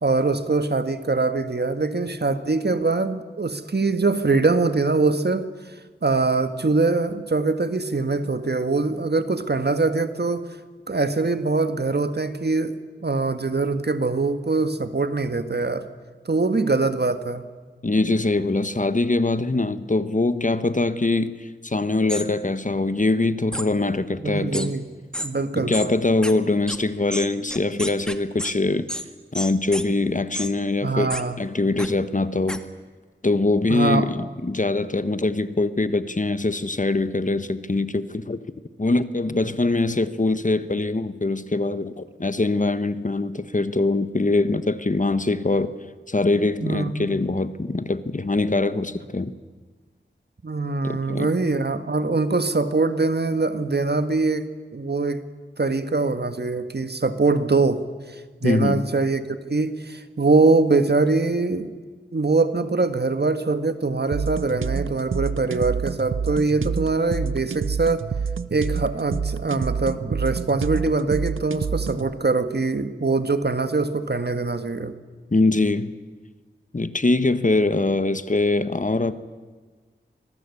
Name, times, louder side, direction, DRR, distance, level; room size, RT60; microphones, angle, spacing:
voice 1, 0.0-5.5 6.0-10.5 10.9-15.9 16.2-17.4 24.2-24.9 25.2-25.7 30.8-31.4 33.7-34.1 46.6-47.1 50.4-55.2 55.6-57.8 58.1-61.7 62.1-68.1 68.5-74.9, right 3 dB, 55° right, 1.7 m, -23 dB
voice 2, 17.8-24.7 25.5-28.9 29.3-31.1 31.4-32.6 33.2-38.4 38.8-45.7 46.1-49.3 50.8-51.3 58.4-58.8 66.6-66.7 75.3-75.9 76.7-79.1, left 2 dB, 40° left, 1.3 m, -23 dB
sound 1, 22.1-22.3 23.5-23.7 24.5-24.7 25.1-25.3 25.7-25.9 26.2-26.3 26.7-26.8 27.1-28.5 28.9-29.1 29.3-29.8 30.3-30.5 31.1-31.2 31.8-31.9 32.5-32.6, equal, 5° left, 2.0 m, -30 dB
sound 2, 64.1-72.1, right 6 dB, 90° right, 0.8 m, -28 dB
25.5 x 19.0 x 8.5 m
wide cardioid pair, 50°, 20 cm